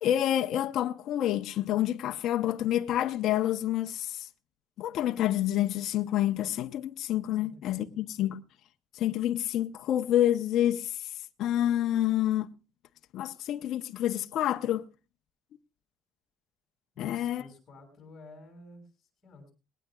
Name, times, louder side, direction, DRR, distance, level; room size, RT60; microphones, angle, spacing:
voice 1, 0.0-4.3 4.8-8.4 8.9-11.0 11.4-12.5 13.1-14.8 17.0-17.4, left 12 dB, 50° left, 0.7 m, -28 dB
voice 2, 7.4-8.0 16.9-19.5, left 2 dB, 25° left, 6.2 m, -52 dB
20.0 x 18.5 x 2.3 m
cardioid pair, 170°, 0 cm